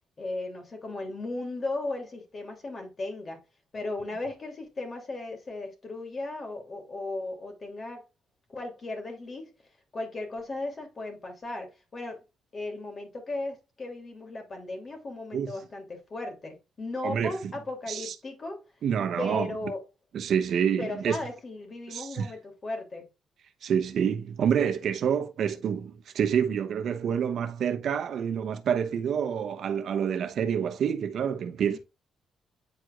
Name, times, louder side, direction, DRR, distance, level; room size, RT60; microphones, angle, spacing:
voice 1, 0.2-3.4 3.7-8.0 8.5-9.5 9.9-12.2 12.5-18.6 19.2-19.8 20.8-23.1 31.7-31.8, left 2 dB, 35° left, 2.8 m, -36 dB
voice 2, 17.0-17.5 17.9-18.1 18.8-19.5 20.1-21.2 21.9-22.3 23.6-31.8, right 8 dB, 65° right, 0.9 m, -27 dB
9.1 x 4.6 x 2.4 m
cardioid pair, 90°, 0 cm